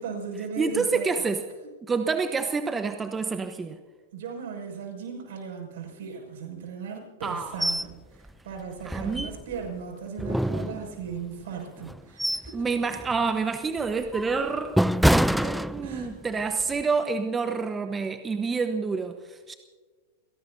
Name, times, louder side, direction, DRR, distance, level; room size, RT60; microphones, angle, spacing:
voice 1, 0.0-1.0 4.1-7.9 8.4-12.7 15.4-16.1, right 6 dB, 70° right, 2 dB, 6.1 m, -37 dB
voice 2, 0.6-1.4 1.8-3.8 7.2-7.7 8.8-9.4 12.5-14.8 15.4-19.5, right 4 dB, 15° right, 8 dB, 1.0 m, -28 dB
sound 1, 7.6-7.9 8.3-8.4 8.9-9.7 10.2-11.2 11.8-12.6 13.0-13.2 13.8-16.2 16.6-16.8, equal, ahead, 0.4 m, -26 dB
29.0 x 18.0 x 2.7 m, 1.4 s
hypercardioid pair, 105°, 0 cm